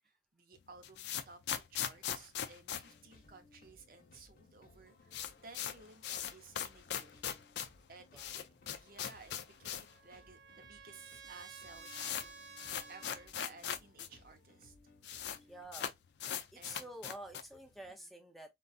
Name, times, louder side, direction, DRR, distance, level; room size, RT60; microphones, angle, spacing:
voice 1, 0.0-7.1 7.6-12.4 12.9-14.7 15.3-15.5 16.5-16.9 17.9-18.1, right 3 dB, 50° right, 0.6 m, -57 dB
sound 1, 0.6-3.8 4.1-4.2 4.4-4.5 4.8-10.0 10.3-10.4 11.1-11.2 11.4-14.1 14.4-14.5 14.6-15.4 15.7-17.6, left 9 dB, 75° left, 0.4 m, -40 dB
sound 2, 2.8-15.7, left 2 dB, 50° left, 1.0 m, -64 dB
Trumpet, 9.4-13.3, right 5 dB, 90° right, 0.7 m, -53 dB
voice 2, 15.5-15.9 16.5-18.5, right 1 dB, ahead, 0.5 m, -49 dB
3.8 x 2.3 x 2.3 m
head